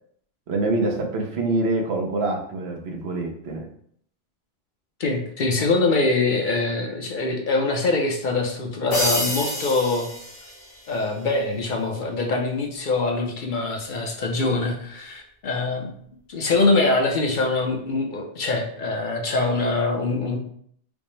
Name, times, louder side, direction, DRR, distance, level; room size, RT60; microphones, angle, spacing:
voice 1, 0.5-3.7, right 2 dB, 85° right, 3 dB, 1.0 m, -25 dB
voice 2, 5.0-10.1 10.9-15.9 16.3-20.4, left 3 dB, 55° left, 1 dB, 0.7 m, -23 dB
sound 1, 8.9-11.0, left 1 dB, 75° left, 1.5 m, -28 dB
5.1 x 2.0 x 3.1 m, 0.65 s
omnidirectional pair, 1.1 m